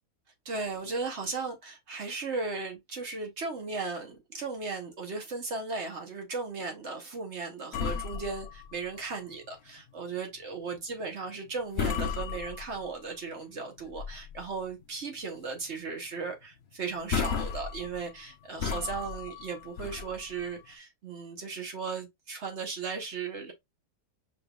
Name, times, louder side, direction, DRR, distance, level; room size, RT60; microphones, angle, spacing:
voice 1, 0.4-23.5, right 4 dB, 50° right, 1.1 m, -36 dB
sound 1, 7.7-9.5 9.9-10.0 10.5-10.8 11.3-11.5 11.7-13.1 13.6-14.4 14.8-14.9 15.4-15.6 15.9-16.0 16.6-16.7 17.0-20.7, left 7 dB, 75° left, 0.6 m, -35 dB
5.0 x 3.3 x 2.3 m
omnidirectional pair, 1.7 m